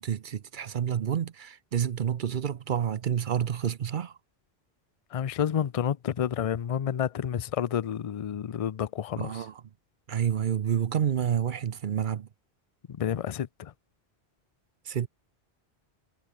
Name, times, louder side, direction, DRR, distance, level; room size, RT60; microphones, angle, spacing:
voice 1, 0.0-4.2 9.2-9.6 10.1-12.3 14.8-15.1, right 9 dB, 55° right, 0.7 m, -29 dB
voice 2, 5.1-9.5 12.9-13.7, left 9 dB, 45° left, 0.5 m, -30 dB
omnidirectional pair, 1.1 m